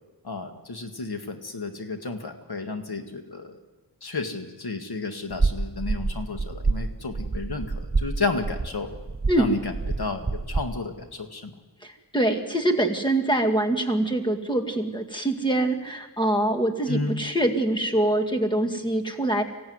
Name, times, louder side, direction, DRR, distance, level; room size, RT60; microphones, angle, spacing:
voice 1, 0.2-3.6 4.0-8.9 9.4-11.5 16.9-17.2, left 3 dB, 65° left, 5 dB, 2.1 m, -32 dB
sound 1, 5.3-10.7, right 3 dB, 25° right, 1.0 m, -28 dB
voice 2, 11.8-19.4, right 1 dB, 10° left, 4 dB, 2.1 m, -24 dB
26.0 x 16.5 x 9.6 m, 1.2 s
wide cardioid pair, 110°, 42 cm